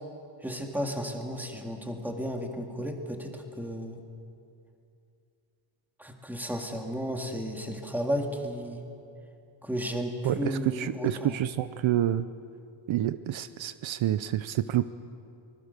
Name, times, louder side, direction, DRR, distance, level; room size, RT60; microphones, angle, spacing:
voice 1, 0.4-4.0 6.0-8.9 9.6-11.4, equal, 5° right, 3 dB, 2.0 m, -33 dB
voice 2, 10.2-12.3 12.9-14.9, right 12 dB, 70° right, 13 dB, 0.7 m, -28 dB
24.5 x 20.5 x 6.7 m, 2.6 s
wide cardioid pair, 155°, 50 cm